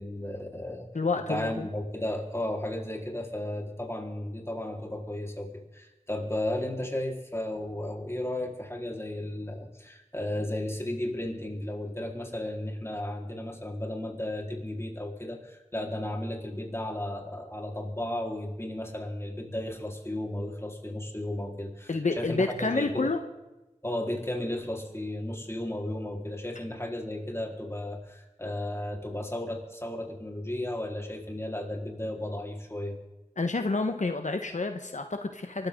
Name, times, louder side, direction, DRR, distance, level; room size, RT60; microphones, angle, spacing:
voice 1, 0.0-0.9 1.3-23.1 23.8-33.0, left 1 dB, 20° left, 1 dB, 4.2 m, -34 dB
voice 2, 0.9-1.7 21.9-23.2 33.4-35.7, left 3 dB, 75° left, 6 dB, 1.3 m, -29 dB
24.0 x 14.0 x 3.9 m, 1.0 s
wide cardioid pair, 40°, 13 cm